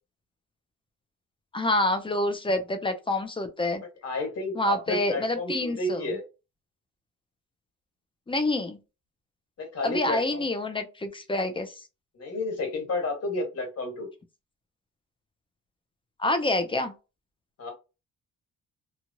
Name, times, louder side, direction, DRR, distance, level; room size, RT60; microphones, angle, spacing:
voice 1, 1.5-3.8 4.5-6.1 8.3-8.8 9.8-11.8 16.2-16.9, left 1 dB, 15° left, 0.6 m, -27 dB
voice 2, 4.0-6.2 9.6-10.4 12.1-14.1 17.6-17.7, left 2 dB, 50° left, 1.7 m, -31 dB
3.0 x 2.3 x 2.7 m
cardioid pair, 100°, 32 cm